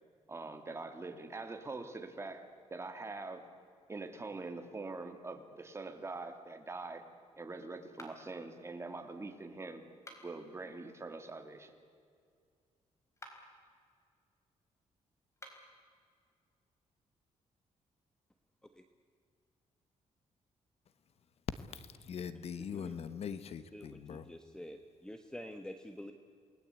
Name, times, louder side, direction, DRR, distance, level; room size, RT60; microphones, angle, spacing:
voice 1, 0.3-3.4 3.9-7.0 7.4-9.8 10.2-11.7, right 3 dB, 20° right, 6 dB, 2.4 m, -44 dB
sound 1, 7.9-8.5 9.9-10.5 13.1-13.6 15.3-15.8, left 1 dB, 25° left, 4.3 m, -53 dB
voice 2, 21.7-24.3, left 7 dB, 55° left, 13 dB, 1.2 m, -42 dB
voice 3, 23.7-26.1, left 1 dB, 5° left, 6 dB, 1.3 m, -47 dB
29.0 x 20.0 x 8.3 m, 2.2 s
cardioid pair, 130°, 12 cm